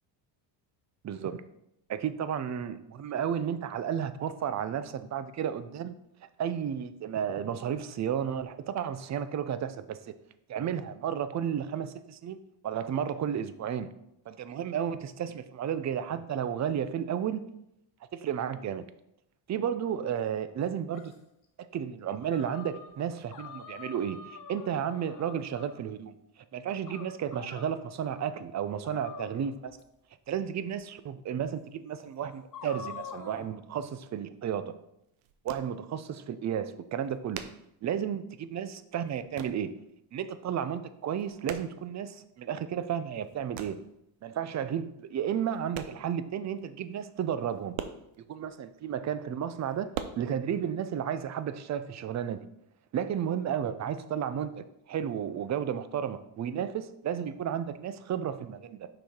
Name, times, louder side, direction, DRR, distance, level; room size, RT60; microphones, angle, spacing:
voice 1, 1.0-1.4 1.9-5.9 6.4-10.0 10.5-12.4 12.6-13.9 14.3-17.4 18.1-18.8 19.5-21.1 21.7-26.1 26.5-29.7 30.3-34.7 35.4-37.4 37.8-39.7 40.1-43.8 44.2-47.8 48.3-52.5 52.9-58.9, right 8 dB, 35° right, 12 dB, 0.5 m, -33 dB
sound 1, 20.9-21.2 22.2-22.9 23.3-25.8 26.9-27.8 28.8-29.8 30.7-30.8 31.4-31.5 32.2-33.5, left 6 dB, 40° left, 1.2 m, -45 dB
sound 2, 34.6-34.7 34.9-36.1 36.4-36.5 36.7-38.5 38.7-39.7 40.0-40.5 40.8-42.5 42.9-44.0 44.7-44.8 45.3-46.3 46.6-46.7 46.9-47.0 47.3-48.7 49.2-50.0, right 10 dB, 90° right, 0.7 m, -42 dB
5.9 x 4.9 x 4.3 m, 0.79 s
cardioid pair, 95°, 49 cm